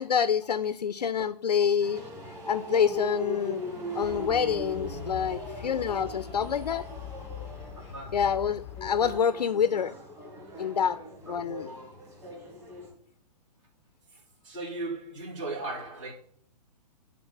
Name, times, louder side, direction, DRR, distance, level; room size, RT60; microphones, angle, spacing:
voice 1, 0.0-2.0 2.5-3.6 3.9-6.9 8.1-9.9 10.6-11.0 11.3-11.7, left 7 dB, 75° left, 0.5 m, -27 dB
sound 1, 1.8-12.9, left 1 dB, 15° right, 2.3 m, -40 dB
sound 2, 4.0-9.2, left 10 dB, 25° left, 0.5 m, -43 dB
voice 2, 7.6-8.3 10.6-10.7 11.3-11.8 14.4-16.1, right 2 dB, 50° right, 2.9 m, -38 dB
11.0 x 3.8 x 5.6 m
figure-of-eight pair, 120°, 21 cm